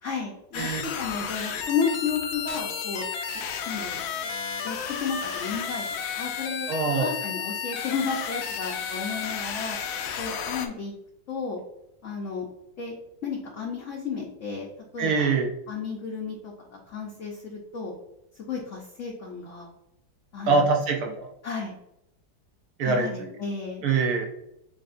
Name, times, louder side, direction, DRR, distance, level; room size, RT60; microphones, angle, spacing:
voice 1, 0.0-3.0 3.7-4.0 4.6-5.8 6.1-6.7 7.0-9.8 10.2-10.9 11.3-11.6 12.0-12.5 12.8-12.9 13.2-14.7 14.9-15.3 15.7-17.9 18.3-19.7 20.3-20.7 21.4-21.7 22.8-23.8, left 5 dB, 60° left, -1 dB, 0.8 m, -32 dB
sound 1, 0.5-10.7, left 7 dB, 90° left, 1.4 m, -32 dB
voice 2, 6.7-7.1 15.0-15.5 20.5-21.3 22.8-23.3 23.8-24.2, right 4 dB, 65° right, 2 dB, 1.0 m, -24 dB
7.5 x 2.7 x 2.5 m, 0.82 s
omnidirectional pair, 2.1 m